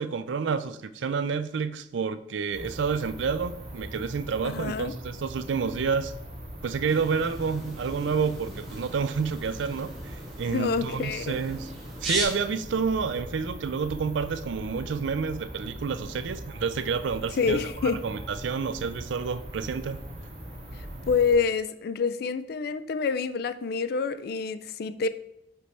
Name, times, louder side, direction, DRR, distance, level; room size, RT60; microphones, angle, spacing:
voice 1, 0.0-6.1 6.6-9.9 10.4-11.7 12.0-17.6 18.0-20.0, right 5 dB, 70° right, 0.4 m, -29 dB
sound 1, 2.5-21.3, equal, 35° right, 1.7 m, -41 dB
voice 2, 4.4-4.9 10.5-11.4 17.4-18.0 20.8-25.1, left 5 dB, 55° left, 0.3 m, -27 dB
sound 2, 6.9-12.2, equal, ahead, 1.4 m, -38 dB
5.2 x 4.5 x 4.1 m
head